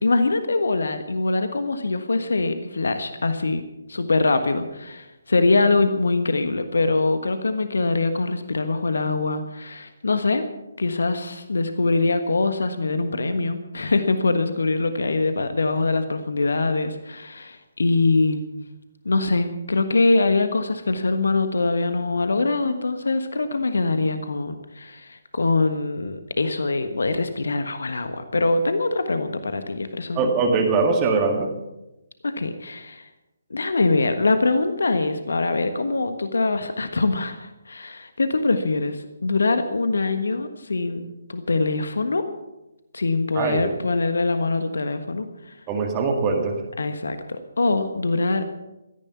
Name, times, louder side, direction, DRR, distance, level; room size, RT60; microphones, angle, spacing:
voice 1, 0.0-3.6 3.9-10.4 10.8-18.5 19.0-30.3 32.2-33.1 33.5-41.0 41.3-42.2 42.9-45.3 46.8-48.5, left 3 dB, 60° left, 9 dB, 1.4 m, -23 dB
voice 2, 30.1-31.5 43.3-43.7 45.7-46.6, right 4 dB, 20° right, 2 dB, 1.9 m, -22 dB
17.0 x 14.0 x 5.9 m, 0.98 s
figure-of-eight pair, 140°, 0 cm